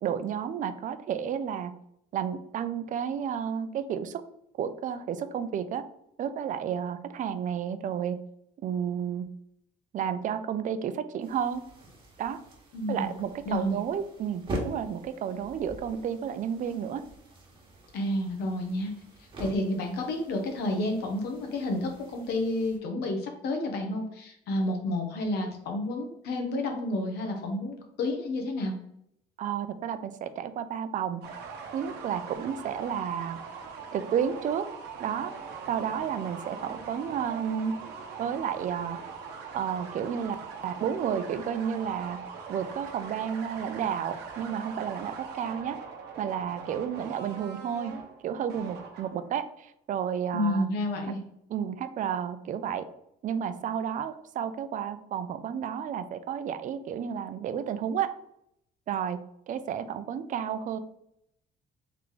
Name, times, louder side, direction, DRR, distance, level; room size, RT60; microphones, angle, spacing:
voice 1, 0.0-1.7 2.1-4.2 4.6-5.8 6.2-8.2 8.6-9.3 9.9-11.6 12.2-12.4 12.9-17.0 29.4-31.2 31.7-33.4 33.9-34.7 35.0-35.3 35.7-37.8 38.2-39.0 39.5-40.4 40.6-42.2 42.5-45.8 46.2-48.0 48.2-50.7 51.5-52.9 53.2-58.1 58.9-60.8, right 8 dB, 50° right, 11 dB, 0.4 m, -31 dB
sound 1, 11.2-22.8, right 1 dB, 30° right, 1.3 m, -44 dB
voice 2, 12.7-13.1 13.5-13.8 17.9-18.9 19.4-28.7 50.3-51.2, left 1 dB, 75° left, 3 dB, 1.0 m, -30 dB
sound 2, 31.2-49.4, right 5 dB, 75° right, 0.8 m, -42 dB
3.7 x 3.2 x 3.7 m, 0.74 s
cardioid pair, 110°, 17 cm